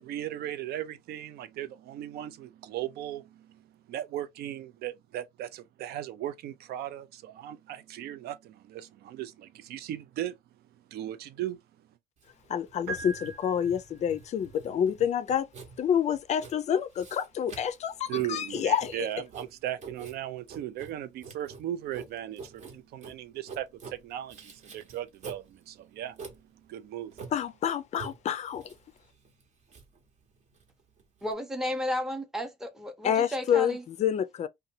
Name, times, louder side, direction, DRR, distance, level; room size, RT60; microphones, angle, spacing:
voice 1, 0.0-10.4 10.9-11.6 18.1-27.2, right 12 dB, 70° right, 0.5 m, -37 dB
Writing, 12.2-31.3, right 4 dB, 45° right, 0.9 m, -48 dB
voice 2, 12.5-15.5 15.8-19.1 27.3-28.7 33.0-34.5, left 9 dB, 40° left, 0.4 m, -28 dB
sound 1, 12.9-14.2, right 3 dB, 90° right, 1.1 m, -40 dB
voice 3, 31.2-33.8, left 1 dB, 5° right, 0.6 m, -33 dB
2.6 x 2.2 x 2.7 m
cardioid pair, 110°, 17 cm